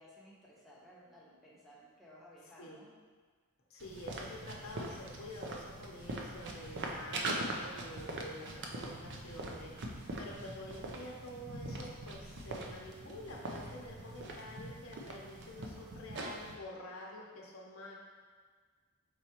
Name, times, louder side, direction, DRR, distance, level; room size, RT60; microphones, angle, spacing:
voice 1, 0.0-2.9, equal, ahead, -7 dB, 0.7 m, -57 dB
voice 2, 3.7-17.9, left 1 dB, 65° left, -2 dB, 0.8 m, -48 dB
sound 1, 3.8-16.5, right 2 dB, 55° right, 0.5 m, -42 dB
4.6 x 4.0 x 2.9 m, 1.5 s
head